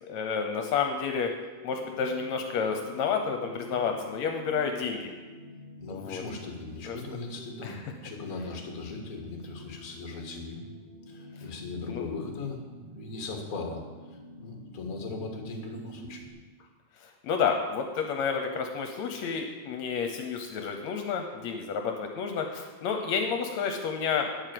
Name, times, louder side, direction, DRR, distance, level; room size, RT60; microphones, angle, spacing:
voice 1, 0.0-1.3 1.6-5.1 5.9-6.2 6.8-7.0 7.6-7.9 11.4-11.5 11.8-12.0 17.0-24.5, left 6 dB, 75° left, 4 dB, 2.1 m, -30 dB
sound 1, 1.5-16.3, right 1 dB, 60° right, 4.5 m, -48 dB
voice 2, 5.8-10.6 11.1-13.8 14.4-16.3, left 3 dB, 35° left, 2 dB, 2.0 m, -38 dB
9.9 x 8.7 x 7.7 m, 1.3 s
omnidirectional pair, 3.3 m